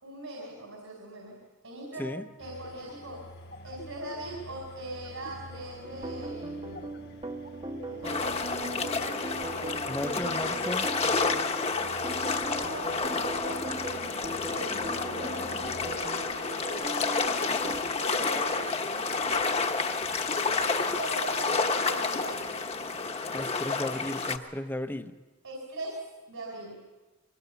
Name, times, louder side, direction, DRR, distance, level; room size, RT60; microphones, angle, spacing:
voice 1, 0.0-2.1 2.4-3.3 3.6-7.1 7.9-9.8 12.4-14.0 14.4-17.5 17.9-18.7 19.2-19.7 20.5-22.6 25.4-26.9, right 1 dB, 70° right, -1 dB, 4.9 m, -41 dB
sound 1, 2.4-15.9, left 1 dB, 50° left, 1.2 m, -48 dB
sound 2, 5.8-17.8, right 2 dB, 25° right, 1.0 m, -39 dB
sound 3, 8.0-24.4, left 4 dB, 30° left, 1.1 m, -30 dB
voice 2, 9.9-10.9 23.3-25.1, left 1 dB, 10° left, 8 dB, 0.8 m, -35 dB
22.5 x 19.5 x 6.9 m, 1.2 s
head